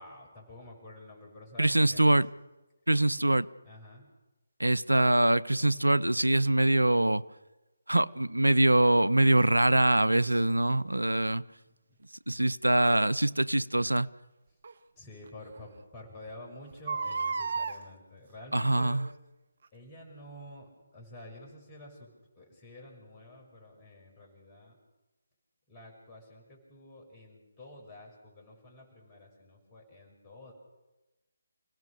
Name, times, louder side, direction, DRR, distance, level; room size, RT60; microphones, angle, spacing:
voice 1, 0.0-2.2 3.6-4.1 11.0-12.0 15.0-19.0 19.7-22.1 22.4-24.8 25.7-30.5, left 1 dB, 20° left, 6.3 m, -50 dB
voice 2, 1.6-2.3 2.9-3.5 4.6-7.2 7.9-11.4 12.3-14.1 18.5-19.1, right 1 dB, 85° right, 0.7 m, -24 dB
Crying sobbing, 10.2-10.4 12.9-13.0 14.6-14.7 15.3-15.4 15.6-15.7 16.7-17.8 18.7-19.1 19.6-19.7, right 4 dB, 50° right, 1.0 m, -33 dB
28.5 x 17.0 x 6.6 m
figure-of-eight pair, 150°, 0 cm